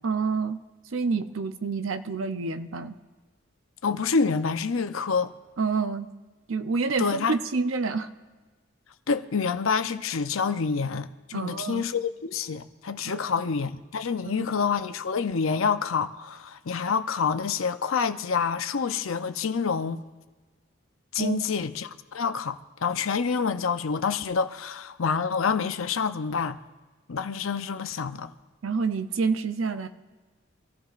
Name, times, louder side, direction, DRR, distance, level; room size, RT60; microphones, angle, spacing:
voice 1, 0.0-0.6 0.9-2.9 5.6-6.1 6.5-8.1 11.3-11.8 13.0-13.4 14.2-14.6 21.2-21.4 28.6-29.9, right 4 dB, 85° right, 0.7 m, -28 dB
voice 2, 3.8-5.3 7.0-7.3 9.1-20.0 21.1-26.6 27.1-28.3, left 5 dB, 85° left, 0.6 m, -27 dB
25.0 x 14.5 x 2.5 m
head